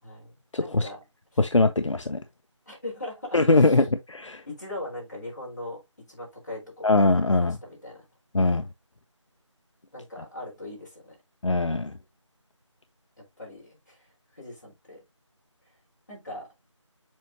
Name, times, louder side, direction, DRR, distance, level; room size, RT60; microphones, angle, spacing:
voice 1, 0.0-1.0 1.3-1.4 2.7-3.8 4.5-6.9 7.3-8.1 9.9-11.2 13.2-15.0 16.1-16.5, left 1 dB, 35° left, 4.1 m, -40 dB
voice 2, 0.5-0.9 1.4-2.2 3.3-4.4 6.8-7.6 8.3-8.6 11.4-11.9, left 2 dB, 70° left, 0.8 m, -21 dB
7.4 x 4.6 x 2.8 m
figure-of-eight pair, 180°, 16 cm